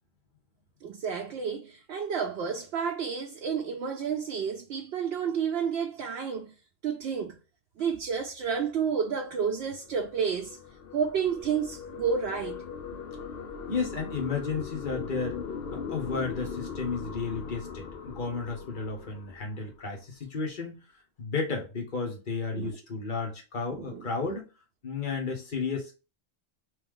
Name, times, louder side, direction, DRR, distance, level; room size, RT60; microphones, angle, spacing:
voice 1, 0.8-6.5 6.8-7.4 7.8-10.6 10.9-12.6 12.9-13.0 22.5-22.7 23.7-24.1, right 6 dB, 80° right, 0.8 m, -30 dB
sound 1, 9.2-19.8, left 5 dB, 70° left, 0.8 m, -40 dB
voice 2, 13.7-15.4 15.7-20.8 21.2-24.5 24.8-25.9, left 4 dB, 55° left, 1.2 m, -33 dB
3.1 x 2.7 x 3.6 m
omnidirectional pair, 1.1 m